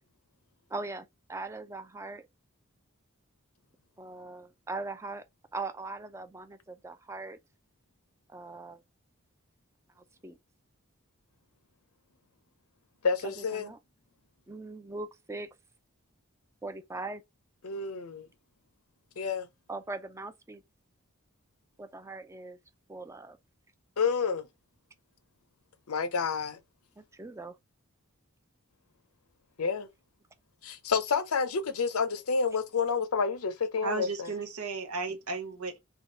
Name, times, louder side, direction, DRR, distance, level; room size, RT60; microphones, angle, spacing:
voice 1, 0.7-2.2 4.0-5.3 5.5-7.4 8.3-8.8 10.0-10.4 13.2-13.8 14.5-15.5 16.6-17.2 19.7-20.6 21.8-22.6 22.9-23.4 27.0-27.6 35.1-35.2, right 3 dB, 15° right, 0.4 m, -40 dB
voice 2, 13.0-13.7 17.6-18.3 19.2-19.5 24.0-24.5 25.9-26.6 29.6-29.9 30.6-34.3, left 5 dB, 90° left, 0.6 m, -29 dB
voice 3, 33.8-35.8, right 4 dB, 90° right, 0.8 m, -34 dB
3.5 x 2.3 x 3.8 m
head